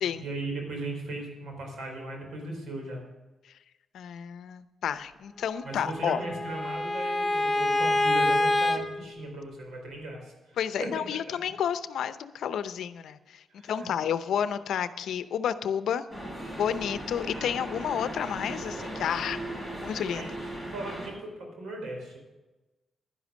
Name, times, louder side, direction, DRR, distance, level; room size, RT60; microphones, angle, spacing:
voice 1, 0.1-3.0 5.6-11.0 13.5-13.9 20.1-22.2, right 2 dB, 85° right, 2 dB, 4.5 m, -37 dB
voice 2, 3.9-6.2 10.6-16.0 16.6-19.4 19.8-20.3, left 8 dB, 80° left, 13 dB, 0.7 m, -31 dB
Bowed string instrument, 5.7-8.8, left 1 dB, 5° left, 1.3 m, -26 dB
sound 1, 16.1-21.1, right 1 dB, 30° right, 5.6 m, -37 dB
11.0 x 11.0 x 6.4 m, 1.1 s
cardioid pair, 95°, 0 cm